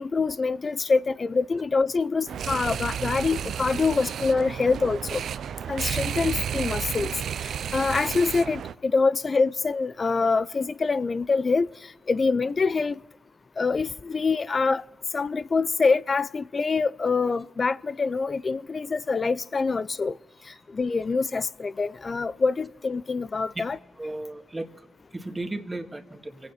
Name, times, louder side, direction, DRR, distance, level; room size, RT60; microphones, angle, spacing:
voice 1, 0.0-5.2 5.7-7.1 7.4-13.0 13.6-14.8 15.1-20.1 20.7-23.8, left 4 dB, 50° left, 0.5 m, -25 dB
sound 1, 2.3-8.7, right 8 dB, 75° right, 0.5 m, -32 dB
voice 2, 24.0-26.5, right 2 dB, 25° right, 1.9 m, -36 dB
25.5 x 9.3 x 5.7 m
supercardioid pair, 45°, 0 cm